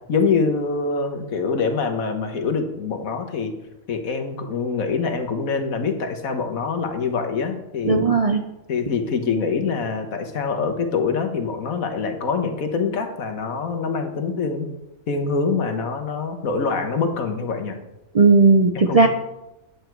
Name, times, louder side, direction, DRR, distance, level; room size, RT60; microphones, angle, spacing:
voice 1, 0.1-3.5 3.9-8.0 8.7-14.7 15.1-17.8 18.7-19.1, left 5 dB, 80° left, 6 dB, 1.6 m, -25 dB
voice 2, 7.9-8.4 18.1-19.1, right 3 dB, 50° right, 4 dB, 0.4 m, -15 dB
10.0 x 8.0 x 4.6 m, 0.95 s
omnidirectional pair, 1.5 m